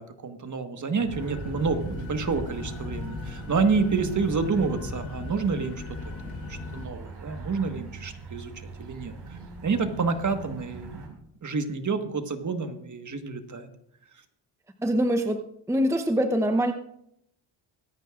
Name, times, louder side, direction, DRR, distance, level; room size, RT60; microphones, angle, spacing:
voice 1, 0.0-6.1 6.5-13.7, right 4 dB, 40° right, 7 dB, 1.5 m, -29 dB
sound 1, 1.0-11.1, right 3 dB, 55° right, 5.3 m, -41 dB
sound 2, 1.1-6.9, left 4 dB, 40° left, 3.7 m, -38 dB
voice 2, 14.8-15.4 15.7-16.7, equal, 5° right, 6 dB, 0.8 m, -23 dB
24.5 x 9.2 x 2.5 m, 0.74 s
cardioid pair, 80°, 48 cm